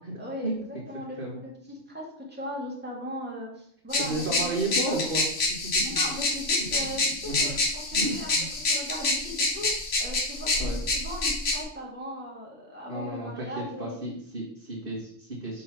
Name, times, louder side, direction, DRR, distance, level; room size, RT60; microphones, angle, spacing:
voice 1, 0.2-5.0 5.8-7.6 7.9-8.3 8.7-9.7 10.0-14.0, left 1 dB, 10° right, -4 dB, 1.8 m, -38 dB
sound 1, 3.9-11.6, left 2 dB, 70° left, 1.8 m, -27 dB
voice 2, 4.0-5.2 5.5-6.0 6.8-6.9 7.3-7.5 7.9-8.5 10.6-10.8 12.9-15.6, right 2 dB, 45° right, -8 dB, 2.0 m, -33 dB
5.4 x 3.8 x 5.9 m, 0.67 s
omnidirectional pair, 1.3 m